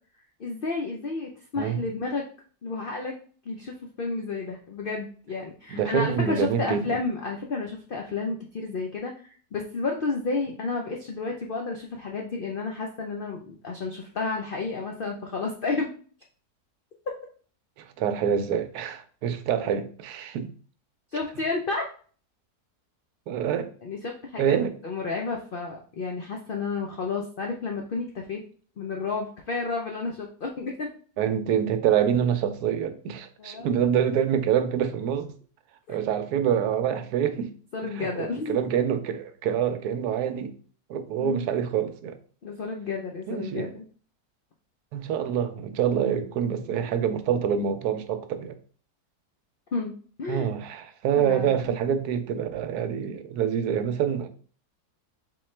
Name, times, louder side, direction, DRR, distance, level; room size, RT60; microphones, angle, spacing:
voice 1, 0.4-2.2 2.6-3.1 3.5-15.9 21.1-21.8 23.8-24.6 24.8-28.4 28.8-30.9 33.4-33.7 35.9-36.0 37.7-38.6 41.2-41.5 42.4-43.8 49.7-49.9 50.2-50.5 51.1-51.7, left 3 dB, 65° left, 0.5 m, -31 dB
voice 2, 5.7-6.9 17.8-20.5 23.3-23.7 24.4-24.7 31.2-35.3 35.9-37.5 37.8-40.5 40.9-42.2 43.3-43.7 44.9-48.6 50.3-54.3, right 8 dB, 80° right, 1.1 m, -26 dB
4.2 x 3.8 x 3.2 m
omnidirectional pair, 1.7 m